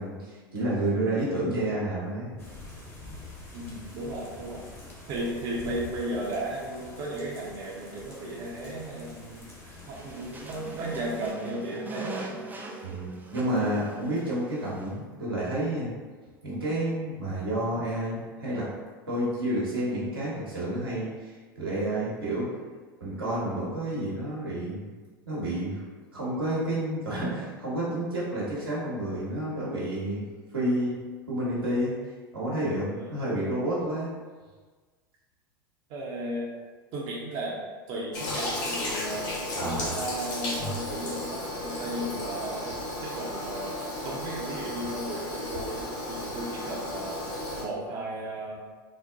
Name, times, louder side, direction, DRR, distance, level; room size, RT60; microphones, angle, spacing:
voice 1, 0.0-2.3 12.8-15.9 16.4-18.7 19.1-22.5 23.0-24.9 25.3-25.8 26.1-30.2 30.5-30.9 31.3-31.9 32.3-34.1 39.5-40.0, right 1 dB, 85° right, -8 dB, 1.2 m, -30 dB
sound 1, 2.4-11.3, left 2 dB, 20° left, 1.0 m, -46 dB
voice 2, 3.5-4.6 5.1-9.5 9.9-12.5 32.9-33.1 35.9-36.5 36.9-37.6 37.9-42.7 43.0-43.7 44.0-47.2 47.6-48.6, right 1 dB, 45° right, -5 dB, 0.7 m, -35 dB
sound 2, 9.8-15.0, right 2 dB, 15° right, 0.5 m, -42 dB
Toilet flush, 38.1-47.6, left 1 dB, 60° left, 1.0 m, -34 dB
4.2 x 2.1 x 2.5 m, 1.4 s
figure-of-eight pair, 85°, 12 cm